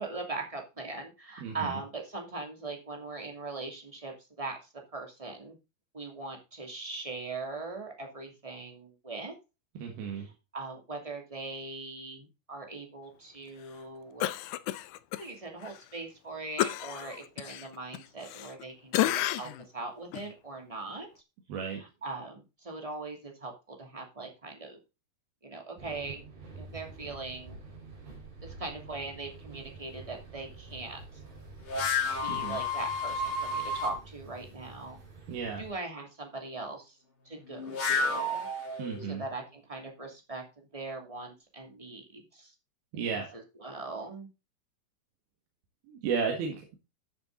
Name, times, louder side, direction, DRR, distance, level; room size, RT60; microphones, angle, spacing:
voice 1, 0.0-4.6 4.9-5.6 5.9-9.4 10.1-14.3 15.2-21.1 21.7-24.8 25.4-26.2 26.6-27.6 28.4-31.0 32.2-35.0 35.6-37.0 37.2-38.8 39.1-42.5 42.9-44.3, right 3 dB, 10° right, 2 dB, 2.0 m, -40 dB
voice 2, 1.4-1.8 9.8-10.3 21.5-21.8 32.3-32.6 35.3-35.6 38.8-39.2 42.9-43.3 45.9-46.8, right 6 dB, 80° right, 2 dB, 3.8 m, -34 dB
Cough, 14.2-15.2 15.6-15.8 16.6-18.6 18.9-19.6 20.1-20.3, left 14 dB, 85° left, 1.8 m, -31 dB
sound 1, 25.8-35.7, right 4 dB, 60° right, 6.0 m, -48 dB
sound 2, 31.7-34.0 37.5-39.2, left 3 dB, 55° left, 5.2 m, -31 dB
13.0 x 7.2 x 3.9 m, 0.28 s
omnidirectional pair, 4.3 m